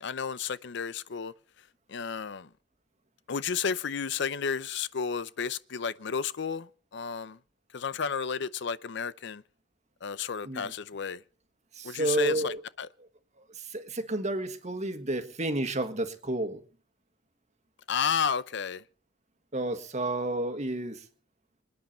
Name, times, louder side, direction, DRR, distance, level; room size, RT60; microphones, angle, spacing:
voice 1, 0.0-1.3 1.9-2.5 3.3-6.7 6.9-7.4 7.7-9.4 10.0-11.2 11.8-12.9 17.9-18.8, left 6 dB, 65° left, 0.6 m, -32 dB
voice 2, 11.7-12.6 13.6-16.6 19.5-21.0, right 2 dB, 40° right, 1.7 m, -31 dB
26.5 x 9.5 x 4.4 m
head